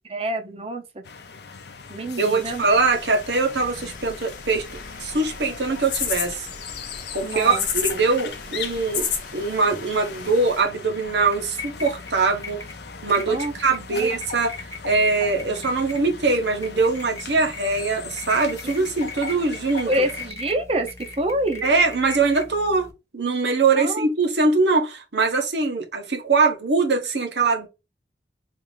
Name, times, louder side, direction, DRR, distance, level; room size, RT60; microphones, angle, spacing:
voice 1, 0.1-1.0 1.9-2.7 7.2-7.7 13.3-13.5 13.9-14.1 18.6-18.8 19.9-21.6 23.7-24.1, right 1 dB, 35° right, 0.6 m, -27 dB
sound 1, 1.0-20.3, left 6 dB, 70° left, 0.5 m, -39 dB
voice 2, 2.2-4.7 5.0-6.5 7.1-12.6 13.0-14.5 14.8-19.9 21.6-22.9 23.1-27.7, right 3 dB, 80° right, 1.0 m, -22 dB
sound 2, 2.4-10.6, left 6 dB, 45° left, 1.0 m, -33 dB
sound 3, 11.0-22.9, left 3 dB, 15° left, 0.5 m, -39 dB
3.5 x 2.5 x 3.2 m
head